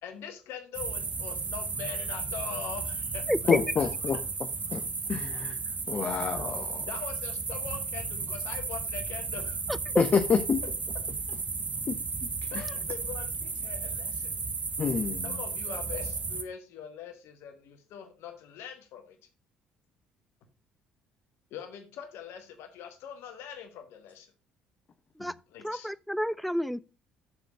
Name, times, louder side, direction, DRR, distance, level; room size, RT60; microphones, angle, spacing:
voice 1, 0.0-3.5 6.9-9.6 12.5-14.4 15.2-19.2 21.5-24.3 25.5-25.9, left 8 dB, 60° left, 1.6 m, -42 dB
sound 1, 0.7-16.4, right 4 dB, 30° right, 1.3 m, -34 dB
voice 2, 3.5-4.2 4.7-5.6 5.9-6.9 10.0-10.6 11.9-12.3 14.8-15.3, left 6 dB, 35° left, 0.9 m, -28 dB
voice 3, 25.6-26.8, equal, ahead, 0.5 m, -29 dB
7.2 x 5.8 x 6.6 m
figure-of-eight pair, 50°, 5 cm